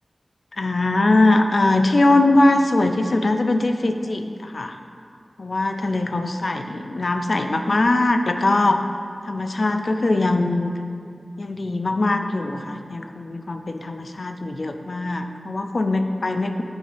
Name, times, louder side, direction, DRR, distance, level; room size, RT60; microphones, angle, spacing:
voice 1, 0.5-4.8 5.4-8.8 9.2-10.7 11.4-16.6, left 2 dB, 55° left, 6 dB, 0.5 m, -21 dB
8.7 x 8.0 x 3.5 m, 2.3 s
wide cardioid pair, 75°, 0 cm